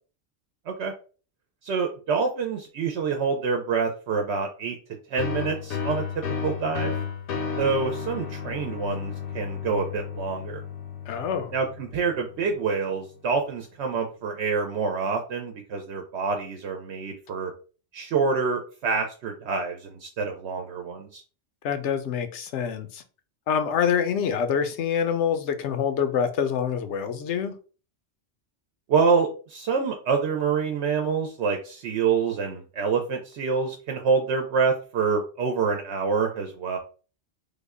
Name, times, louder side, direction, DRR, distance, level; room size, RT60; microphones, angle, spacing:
voice 1, 1.6-4.8 5.1-6.0 6.4-6.9 7.6-10.6 11.5-17.5 17.9-21.2 28.9-36.8, right 5 dB, 80° right, 0.9 m, -26 dB
sound 1, 5.2-12.6, left 6 dB, 60° left, 0.7 m, -33 dB
voice 2, 11.1-11.5 21.6-23.0 23.5-27.5, left 7 dB, 90° left, 0.9 m, -26 dB
3.4 x 2.1 x 3.5 m
omnidirectional pair, 1.1 m